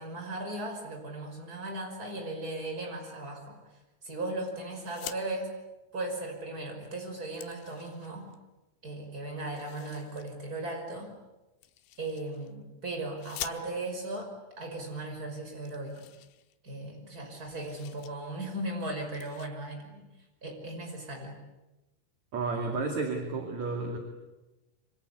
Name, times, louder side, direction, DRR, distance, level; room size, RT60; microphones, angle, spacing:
voice 1, 0.0-3.6 4.0-5.5 5.9-8.3 8.8-11.1 12.0-16.1 16.6-20.0 20.4-21.4, right 2 dB, 20° right, 3 dB, 5.6 m, -37 dB
sound 1, 4.8-5.2 6.6-6.7 7.0-8.4 9.5-10.3 11.6-12.5 13.2-14.1 14.9-15.0 15.3-15.4 15.7-17.0 17.2-18.1 18.5-18.7 19.1-19.5, left 13 dB, 75° left, 3.6 m, -46 dB
voice 2, 22.3-24.0, right 3 dB, 45° right, 3 dB, 3.1 m, -31 dB
27.5 x 25.0 x 8.4 m, 1.0 s
omnidirectional pair, 5.8 m